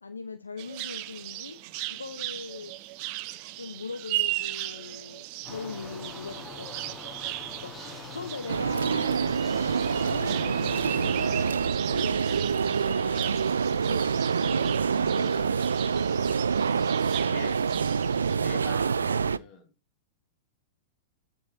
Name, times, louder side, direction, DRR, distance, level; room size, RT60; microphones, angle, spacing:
voice 1, 0.0-1.6 1.9-2.7 3.6-6.7 7.5-9.2 10.1-14.1 14.4-14.8 15.0-15.7, left 4 dB, 85° left, 0.9 m, -40 dB
sound 1, 0.6-18.4, right 17 dB, 45° right, 0.8 m, -37 dB
sound 2, 5.4-11.5, left 3 dB, 15° left, 4.5 m, -43 dB
sound 3, 8.5-19.4, right 6 dB, 80° right, 0.5 m, -26 dB
voice 2, 17.1-17.6 18.4-19.7, left 6 dB, 35° left, 2.7 m, -44 dB
9.5 x 7.6 x 2.8 m
figure-of-eight pair, 105°, 0 cm